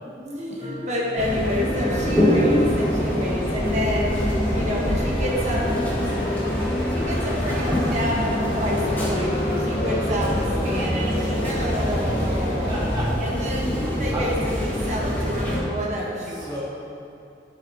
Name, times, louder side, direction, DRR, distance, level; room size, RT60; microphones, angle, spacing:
voice 1, 0.2-4.2 4.5-5.8 6.1-9.3 9.6-12.8 13.2-13.7 14.0-16.5, equal, 40° right, -3 dB, 1.2 m, -29 dB
sound 1, 0.6-12.1, left 1 dB, 40° left, 1.2 m, -37 dB
sound 2, 1.2-15.6, equal, 10° left, 1.6 m, -24 dB
sound 3, 2.5-13.0, left 1 dB, 70° left, 2.1 m, -33 dB
voice 2, 12.7-13.3 14.1-14.2 16.2-16.6, equal, 25° right, -6 dB, 1.1 m, -33 dB
11.5 x 7.8 x 2.8 m, 2.6 s
head